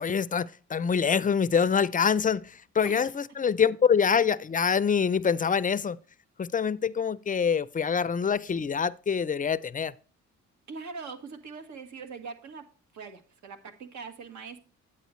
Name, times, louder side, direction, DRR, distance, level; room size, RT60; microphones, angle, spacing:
voice 1, 0.0-2.4 2.7-6.0 6.4-9.9, left 6 dB, 25° left, 0.5 m, -25 dB
voice 2, 10.7-12.7 12.9-14.6, right 5 dB, 70° right, 1.7 m, -42 dB
9.2 x 8.6 x 3.1 m
cardioid pair, 90°, 30 cm